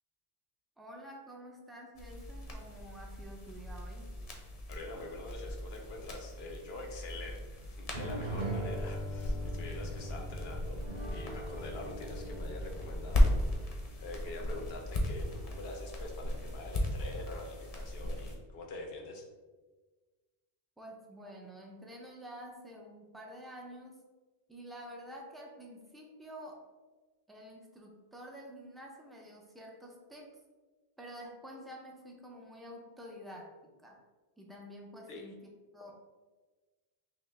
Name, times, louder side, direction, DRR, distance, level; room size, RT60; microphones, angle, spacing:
voice 1, 0.8-4.1 20.8-24.0 24.5-26.6 27.3-30.3 31.0-33.5 33.8-34.0 34.4-35.9, equal, ahead, -1 dB, 0.3 m, -49 dB
sound 1, 2.0-18.4, left 1 dB, 40° left, 0.7 m, -36 dB
voice 2, 4.7-10.8 11.1-19.2 35.1-35.3, left 2 dB, 80° left, 2 dB, 1.0 m, -45 dB
sound 2, 7.9-14.1, right 1 dB, 65° right, 1.0 m, -41 dB
5.8 x 2.1 x 3.3 m, 1.3 s
omnidirectional pair, 1.0 m